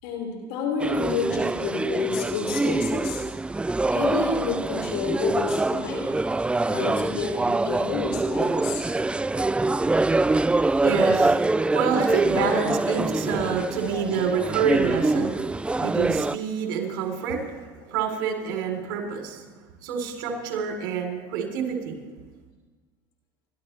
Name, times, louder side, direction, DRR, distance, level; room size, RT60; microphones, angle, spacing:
voice 1, 0.0-3.2 3.9-6.1 6.6-8.8 11.1-11.3 12.3-12.6 13.0-13.2 13.8-14.0, left 5 dB, 80° left, 0 dB, 5.1 m, -29 dB
sound 1, 0.8-16.4, right 2 dB, 10° right, 0.4 m, -25 dB
voice 2, 10.5-15.4 15.8-22.1, right 6 dB, 90° right, 2 dB, 3.9 m, -28 dB
29.5 x 13.5 x 3.4 m, 1.3 s
supercardioid pair, 95°, 11 cm